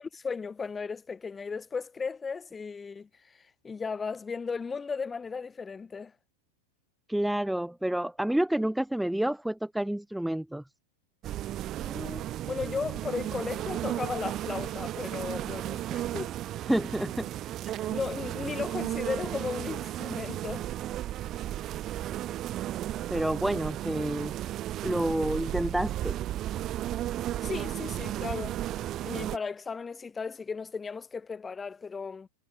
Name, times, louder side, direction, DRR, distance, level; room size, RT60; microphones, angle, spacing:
voice 1, 0.0-6.1 11.8-16.3 17.9-20.7 27.4-28.6 29.0-32.3, left 5 dB, 15° left, 1.7 m, -36 dB
voice 2, 7.1-10.6 16.7-17.3 17.6-17.9 23.1-24.3 24.8-26.2, right 1 dB, ahead, 0.6 m, -29 dB
sound 1, 11.2-29.4, right 13 dB, 30° right, 1.2 m, -34 dB
figure-of-eight pair, 90°, 0 cm